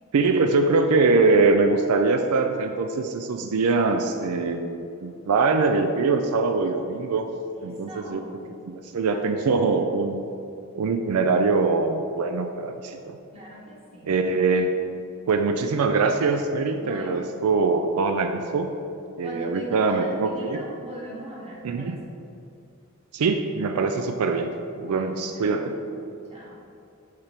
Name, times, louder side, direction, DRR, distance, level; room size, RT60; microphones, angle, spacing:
voice 1, 0.1-7.3 7.6-8.2 8.7-10.3 10.8-13.2 14.0-14.7 15.3-18.7 19.2-20.6 21.6-22.0 23.1-24.5 24.8-25.7, right 4 dB, 85° right, 6 dB, 0.4 m, -23 dB
voice 2, 7.5-8.5 9.1-9.3 9.6-9.8 13.3-14.1 16.7-17.3 19.2-21.9 24.8-26.0 26.3-26.6, right 1 dB, 25° right, -5 dB, 1.4 m, -41 dB
6.7 x 3.4 x 5.7 m, 2.6 s
head